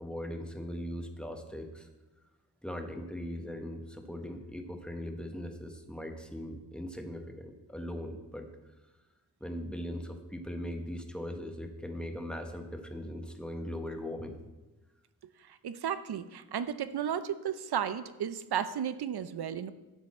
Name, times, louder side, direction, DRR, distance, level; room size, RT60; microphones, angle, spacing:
voice 1, 0.0-1.9 2.6-8.5 9.4-14.4, equal, 5° left, 4 dB, 1.0 m, -39 dB
voice 2, 15.6-19.7, right 8 dB, 85° right, 13 dB, 0.6 m, -33 dB
11.5 x 8.0 x 4.2 m, 1.1 s
wide cardioid pair, 120°, 38 cm